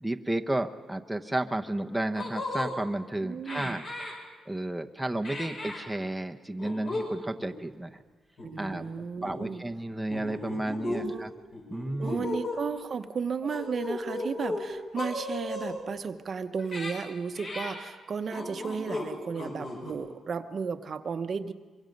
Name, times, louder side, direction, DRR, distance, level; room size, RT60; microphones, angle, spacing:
voice 1, 0.0-3.8 4.5-8.0 8.6-8.9 9.2-11.3 11.7-12.3, right 1 dB, 5° right, 4 dB, 0.9 m, -32 dB
sound 1, 1.6-1.7 2.1-2.7 3.5-4.1 5.2-5.8 6.6-7.1 7.4-7.5 8.4-8.9 9.2-9.5 10.1-11.0 11.5-12.6 13.4-14.7 15.0-15.8 16.6-16.9 17.3-17.8 18.3-19.1 19.3-19.9, left 2 dB, 55° left, 6.6 m, -35 dB
voice 2, 3.2-3.8 8.4-9.6 10.9-11.3 12.0-21.5, right 5 dB, 45° right, 8 dB, 0.9 m, -34 dB
24.0 x 23.5 x 5.3 m, 1.4 s
cardioid pair, 115°, 0 cm